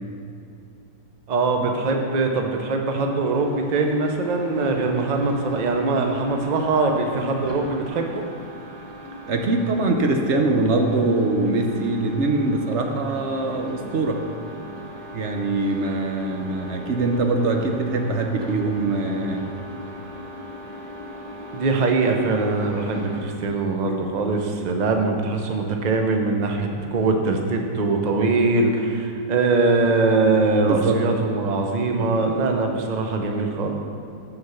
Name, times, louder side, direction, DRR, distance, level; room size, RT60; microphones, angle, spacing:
voice 1, 1.3-8.2 21.5-33.7, right 3 dB, 85° right, 3 dB, 0.3 m, -22 dB
sound 1, 3.3-23.2, equal, 15° right, 1.1 m, -39 dB
voice 2, 9.3-14.2 15.1-19.4 30.6-31.0, right 2 dB, 60° right, 3 dB, 0.8 m, -23 dB
7.0 x 6.5 x 6.9 m, 2.5 s
omnidirectional pair, 1.9 m